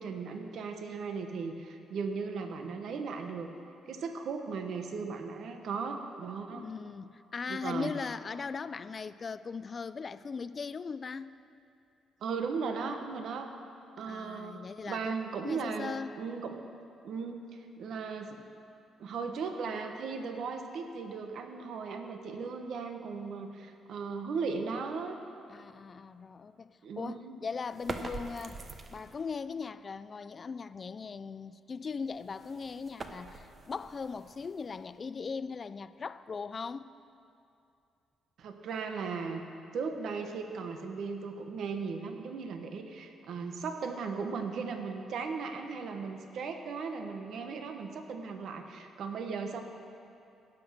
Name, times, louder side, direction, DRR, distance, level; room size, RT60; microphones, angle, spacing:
voice 1, 0.0-3.5 3.9-6.6 7.5-7.9 12.2-13.5 14.0-16.6 17.0-18.4 19.0-25.2 26.8-27.4 38.4-39.4 39.7-49.6, right 5 dB, 70° right, 5 dB, 1.0 m, -37 dB
voice 2, 6.5-11.3 14.0-15.0 15.4-16.2 25.5-28.6 28.9-36.9, left 5 dB, 40° left, 14 dB, 0.4 m, -39 dB
sound 1, 27.7-29.3 32.0-35.0, right 3 dB, 35° right, 0.8 m, -44 dB
16.5 x 6.0 x 6.5 m, 2.6 s
cardioid pair, 90°, 0 cm